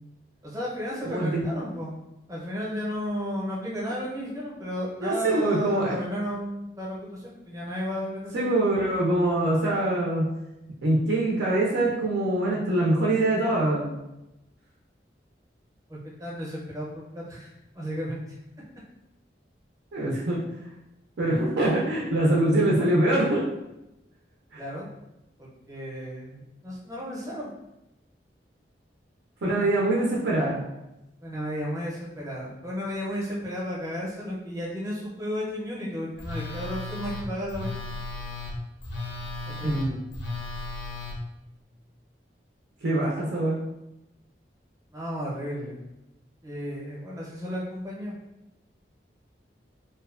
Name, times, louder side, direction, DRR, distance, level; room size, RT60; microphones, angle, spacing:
voice 1, 0.4-2.0 2.3-8.7 15.9-18.4 24.6-24.9 25.4-27.5 29.5-29.7 31.2-37.7 39.5-39.7 44.9-45.8 46.4-48.2, equal, 20° right, -5 dB, 0.6 m, -33 dB
voice 2, 1.0-1.5 5.0-6.0 8.3-10.3 10.8-14.0 19.9-20.4 21.2-23.5 24.5-24.6 29.4-30.6 39.6-40.0 42.8-43.6, right 1 dB, 80° right, -4 dB, 0.4 m, -24 dB
Telephone, 36.2-41.2, left 2 dB, 85° left, 0.6 m, -35 dB
2.6 x 2.1 x 2.3 m, 0.93 s
head